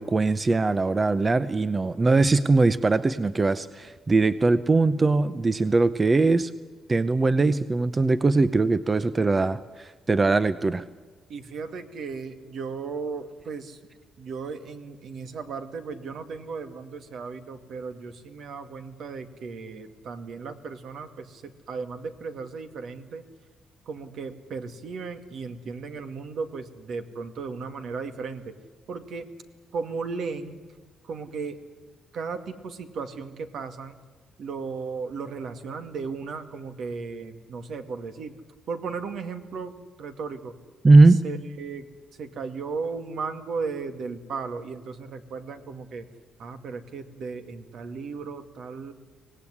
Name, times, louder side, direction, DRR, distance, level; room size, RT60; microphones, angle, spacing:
voice 1, 0.0-6.5 6.9-10.8 40.8-41.2, right 3 dB, 25° right, 14 dB, 0.7 m, -21 dB
voice 2, 11.3-13.8 14.2-23.3 23.9-28.6 28.9-29.3 29.7-30.6 31.0-31.6 32.1-34.0 34.4-38.4 38.7-40.5 41.2-41.9 42.2-46.1 46.4-48.9, right 5 dB, 65° right, 8 dB, 2.1 m, -35 dB
24.5 x 18.5 x 9.9 m, 1.4 s
cardioid pair, 125°, 0 cm